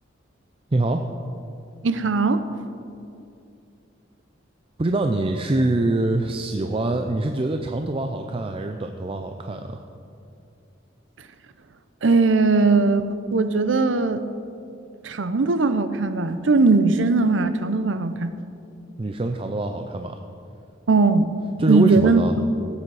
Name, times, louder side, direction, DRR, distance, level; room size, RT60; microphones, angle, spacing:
voice 1, 0.7-1.0 4.8-9.8 19.0-20.2 21.6-22.3, right 2 dB, 30° right, 5 dB, 0.5 m, -24 dB
voice 2, 1.8-2.4 12.0-13.0 13.3-14.2 15.0-18.3 20.9-21.3 21.7-22.2, right 3 dB, 75° right, 11 dB, 0.7 m, -19 dB
17.0 x 8.5 x 4.8 m, 2.6 s
head